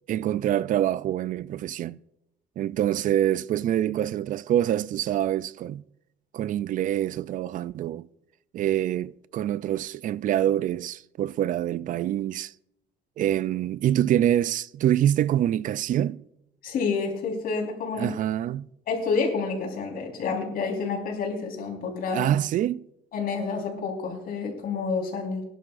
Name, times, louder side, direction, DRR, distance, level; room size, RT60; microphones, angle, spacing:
voice 1, 0.1-2.0 2.6-5.8 6.3-8.1 8.5-12.5 13.2-16.2 18.0-18.7 22.1-22.8, right 11 dB, 50° right, 0.4 m, -25 dB
voice 2, 16.6-18.1 18.9-22.3 23.1-25.4, left 4 dB, 60° left, 4.1 m, -29 dB
22.0 x 11.0 x 2.5 m
cardioid pair, 120°, 17 cm